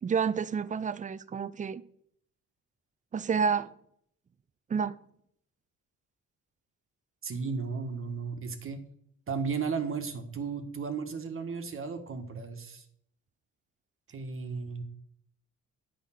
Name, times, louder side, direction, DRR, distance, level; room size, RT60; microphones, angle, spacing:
voice 1, 0.0-1.8 3.1-3.7 4.7-5.0, right 6 dB, 25° right, 0.5 m, -29 dB
voice 2, 7.2-8.8 9.3-12.8 14.1-14.8, right 5 dB, 45° right, 1.4 m, -34 dB
9.0 x 5.1 x 5.8 m
cardioid pair, 90°, 30 cm